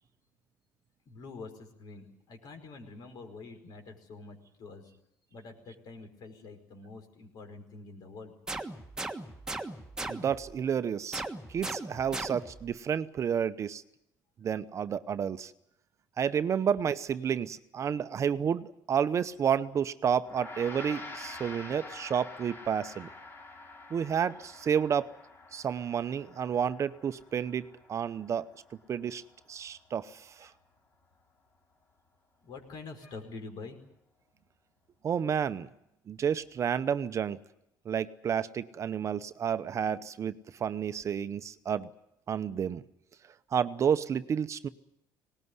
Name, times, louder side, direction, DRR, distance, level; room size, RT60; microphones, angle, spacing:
voice 1, 1.0-4.9 5.3-8.3 30.4-30.5 32.4-33.8, left 3 dB, 60° left, 6 dB, 5.0 m, -46 dB
sound 1, 8.5-10.5 11.1-12.7, right 2 dB, 10° right, 1.5 m, -38 dB
voice 2, 10.1-11.2 11.5-13.8 14.4-15.5 16.2-23.1 23.9-25.1 25.5-28.5 28.9-29.2 29.5-30.5 35.0-35.7 36.1-37.4 37.9-41.9 42.3-42.8 43.5-44.7, right 8 dB, 40° right, 12 dB, 0.8 m, -30 dB
Gong, 20.2-29.8, left 3 dB, 30° left, 3.4 m, -47 dB
19.5 x 19.0 x 9.7 m, 0.79 s
cardioid pair, 115°, 8 cm